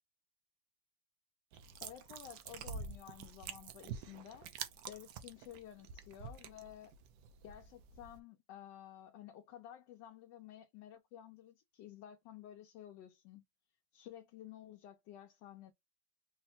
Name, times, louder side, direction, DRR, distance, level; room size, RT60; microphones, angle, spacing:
sound 1, 1.5-8.2, right 6 dB, 75° right, 1.2 m, -48 dB
voice 1, 1.8-4.5 4.9-6.9 7.4-13.4 13.9-15.7, left 11 dB, 75° left, 1.2 m, -53 dB
4.1 x 2.1 x 4.1 m
omnidirectional pair, 2.0 m